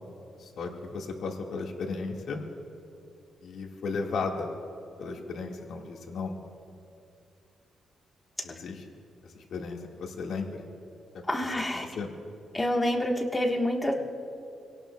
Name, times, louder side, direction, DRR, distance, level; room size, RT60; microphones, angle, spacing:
voice 1, 0.4-2.4 3.4-4.5 5.0-6.3 8.4-8.9 9.2-10.6 11.7-12.1, left 4 dB, 70° left, 0 dB, 1.7 m, -35 dB
voice 2, 11.3-11.8 12.5-13.9, left 1 dB, 15° left, 1 dB, 1.3 m, -27 dB
25.5 x 17.5 x 2.3 m, 2.7 s
cardioid pair, 140°, 0 cm